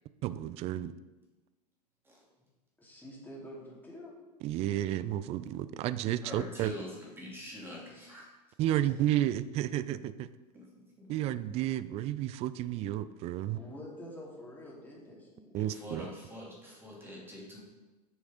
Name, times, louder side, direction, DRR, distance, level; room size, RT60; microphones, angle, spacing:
voice 1, 0.2-0.9 4.4-6.7 8.6-10.3 11.1-13.6 15.5-16.0, right 13 dB, 30° right, 15 dB, 0.3 m, -32 dB
voice 2, 2.8-4.1 8.7-8.9 13.5-15.5, equal, 10° left, -5 dB, 2.7 m, -47 dB
voice 3, 6.2-8.3 10.5-10.7 11.0-11.3 15.6-17.6, equal, 10° right, -3 dB, 2.7 m, -45 dB
6.4 x 6.1 x 5.0 m, 1.1 s
figure-of-eight pair, 85°, 20 cm